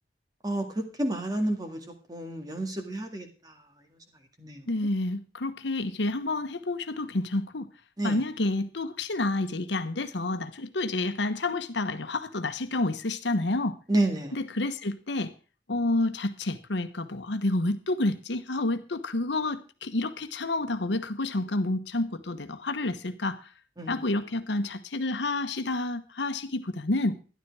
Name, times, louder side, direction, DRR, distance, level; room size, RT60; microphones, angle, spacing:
voice 1, 0.4-1.8 2.1-3.3 4.4-4.6 8.0-8.2 13.9-14.4 23.8-24.0, right 1 dB, 20° right, 2.0 m, -29 dB
voice 2, 4.7-7.7 8.0-13.8 14.3-15.3 15.7-23.5 23.9-27.2, left 2 dB, 80° left, 1.1 m, -29 dB
13.0 x 11.0 x 4.7 m
head